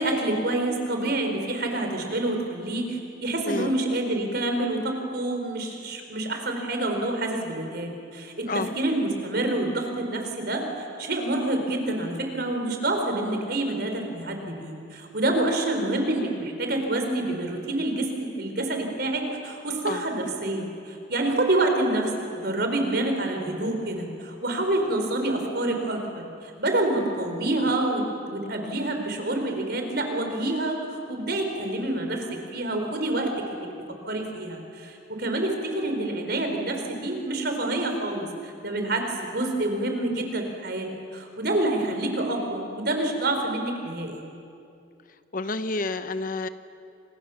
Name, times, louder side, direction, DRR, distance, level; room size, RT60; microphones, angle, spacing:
voice 1, 0.0-44.2, right 1 dB, 55° right, 4 dB, 4.5 m, -27 dB
voice 2, 45.3-46.5, left 2 dB, 45° left, 11 dB, 1.0 m, -29 dB
30.0 x 27.0 x 7.2 m, 2.5 s
head